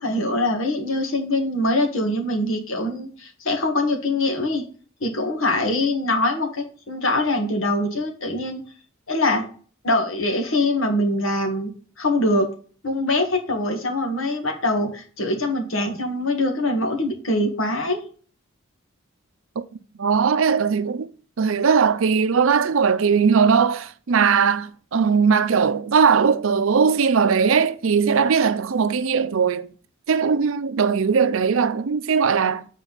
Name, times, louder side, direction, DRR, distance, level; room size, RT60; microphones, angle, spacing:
voice 1, 0.0-4.6 5.0-8.6 9.1-9.5 9.8-11.7 12.0-12.5 12.8-18.0, left 1 dB, 70° left, 1.6 m, -23 dB
voice 2, 19.9-21.1 21.4-29.7 30.1-32.7, right 6 dB, 70° right, 0.5 m, -19 dB
7.5 x 4.5 x 4.0 m
head